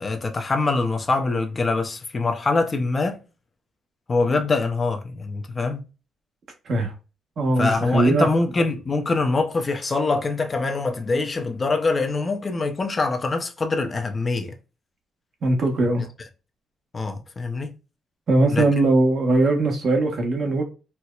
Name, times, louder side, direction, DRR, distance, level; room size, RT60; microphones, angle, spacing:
voice 1, 0.0-3.2 4.1-5.8 7.6-14.5 16.9-17.7 18.5-18.7, left 3 dB, 30° left, 0.6 m, -24 dB
voice 2, 7.4-8.3 15.4-16.1 18.3-20.6, right 2 dB, 55° right, 1.1 m, -20 dB
4.3 x 2.0 x 2.3 m
cardioid pair, 90°, 0 cm